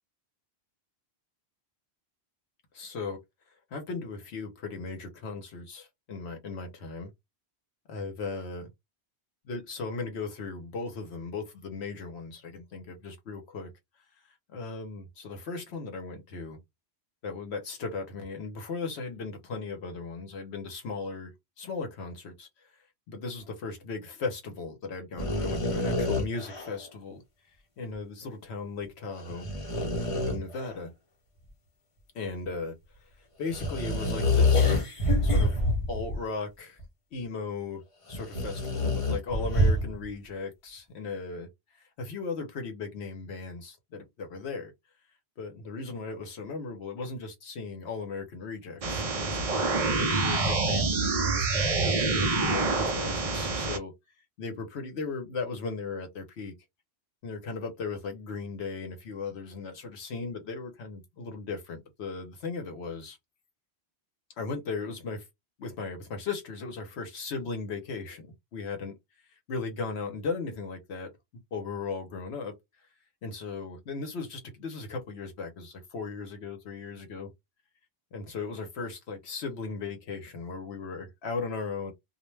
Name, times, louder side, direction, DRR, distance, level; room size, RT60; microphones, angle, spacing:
voice 1, 2.7-3.2 3.7-7.1 7.9-8.7 9.4-13.7 14.5-16.6 17.2-21.3 21.6-22.7 23.1-27.2 27.8-29.5 30.1-30.9 32.1-32.7 33.4-34.8 35.2-36.8 37.1-37.8 38.1-41.5 41.7-44.7 45.4-49.4 49.9-53.9 54.4-56.5 57.2-63.2 64.4-65.2 65.6-68.2 68.5-68.9 69.5-71.1 71.5-72.5 73.2-77.3 78.1-81.9, left 4 dB, 75° left, 1.0 m, -37 dB
sound 1, 25.2-26.8 29.2-30.7 33.5-36.2 36.8-36.9 38.1-40.0, left 2 dB, 35° left, 0.8 m, -26 dB
sound 2, 48.8-53.8, right 3 dB, 45° right, 0.5 m, -27 dB
2.4 x 2.1 x 3.1 m
omnidirectional pair, 1.1 m